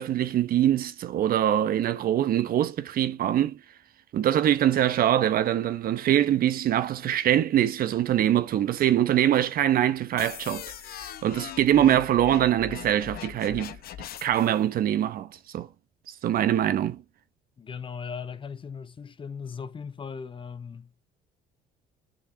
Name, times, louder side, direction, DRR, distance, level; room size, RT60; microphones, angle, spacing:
voice 1, 0.0-3.6 4.1-10.6 11.0-13.8 14.2-15.7 16.1-17.0, right 11 dB, 60° right, 1.1 m, -23 dB
sound 1, 10.2-14.6, left 11 dB, 65° left, 1.0 m, -41 dB
voice 2, 17.6-21.0, left 6 dB, 30° left, 1.0 m, -38 dB
7.4 x 6.3 x 3.6 m
cardioid pair, 110°, 17 cm